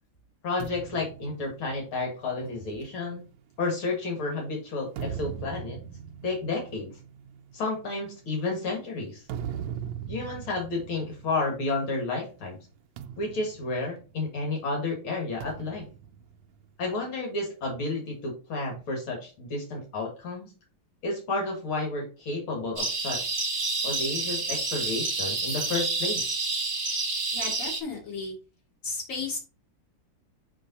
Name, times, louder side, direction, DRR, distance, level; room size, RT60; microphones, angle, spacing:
voice 1, 0.4-3.2 3.6-5.8 6.2-6.9 7.5-9.2 10.1-12.6 13.2-15.9 16.8-20.5 21.0-23.3 23.8-26.3, left 3 dB, 75° left, 0 dB, 2.8 m, -31 dB
sound 1, 0.6-4.2 4.7-12.1 12.4-12.6 13.0-14.6 15.4-17.2, right 8 dB, 70° right, 1.2 m, -41 dB
sound 2, 22.8-27.8, right 3 dB, 20° right, 1.3 m, -29 dB
voice 2, 27.3-28.3 28.8-29.4, left 4 dB, 40° left, -2 dB, 2.7 m, -34 dB
7.6 x 3.5 x 4.1 m, 0.34 s
omnidirectional pair, 2.3 m